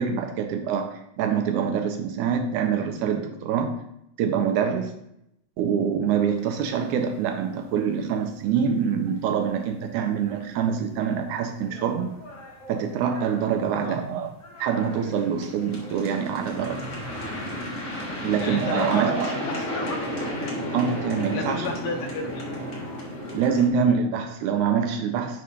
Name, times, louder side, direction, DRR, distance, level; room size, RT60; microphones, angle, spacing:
voice 1, 0.0-3.8 4.2-4.9 5.6-12.1 12.7-14.3 14.6-16.8 18.2-19.5 20.7-21.7 23.3-25.4, right 7 dB, 75° right, 6 dB, 1.9 m, -25 dB
sound 1, 6.5-7.2 7.5-7.6 7.9-8.0 8.4-8.5 10.3-10.4 11.0-11.1 11.4-23.7, left 1 dB, 35° left, 1.3 m, -34 dB
voice 2, 18.4-20.0 21.3-22.5 23.8-24.0, left 3 dB, 70° left, 3 dB, 1.9 m, -32 dB
6.7 x 3.7 x 5.6 m, 0.79 s
omnidirectional pair, 3.8 m